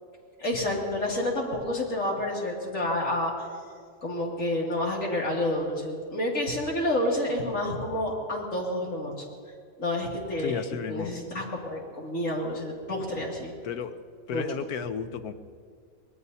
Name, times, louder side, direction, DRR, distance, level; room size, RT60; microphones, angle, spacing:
voice 1, 0.4-3.5 4.0-9.2 9.8-13.5 14.3-14.4, left 1 dB, 60° left, -3 dB, 2.9 m, -29 dB
voice 2, 10.4-11.1 13.6-14.0 14.3-15.3, left 7 dB, 90° left, 10 dB, 1.3 m, -33 dB
24.0 x 19.0 x 2.8 m, 2.1 s
omnidirectional pair, 1.5 m